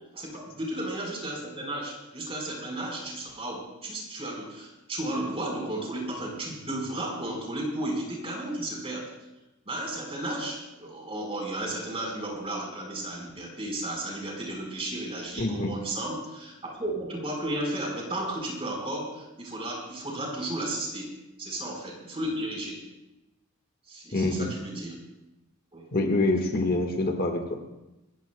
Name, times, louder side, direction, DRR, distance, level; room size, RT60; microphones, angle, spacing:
voice 1, 0.1-9.1 9.7-21.1 21.4-22.8 23.9-25.0 25.7-25.9, right 1 dB, 25° right, -1 dB, 4.2 m, -34 dB
voice 2, 15.4-15.7 24.1-24.5 25.9-27.6, left 2 dB, 45° left, 3 dB, 1.5 m, -26 dB
26.0 x 14.5 x 2.2 m, 0.97 s
head